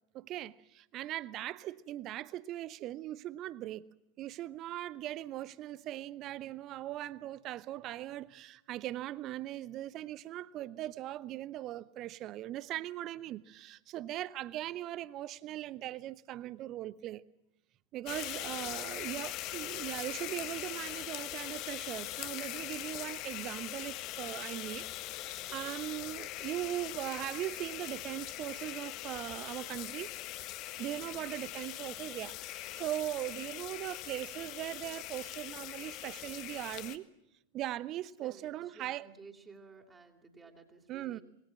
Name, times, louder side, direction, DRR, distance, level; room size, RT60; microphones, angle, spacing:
voice 1, 0.1-3.8 4.2-17.2 17.9-30.1 30.8-37.0 37.5-39.1 40.9-41.2, right 14 dB, 35° right, 0.9 m, -40 dB
sound 1, 18.1-37.0, left 15 dB, 40° left, 1.5 m, -41 dB
voice 2, 18.4-19.1 30.9-31.1 38.0-41.2, right 4 dB, 15° right, 3.4 m, -56 dB
27.0 x 21.5 x 7.5 m
figure-of-eight pair, 90°, 0 cm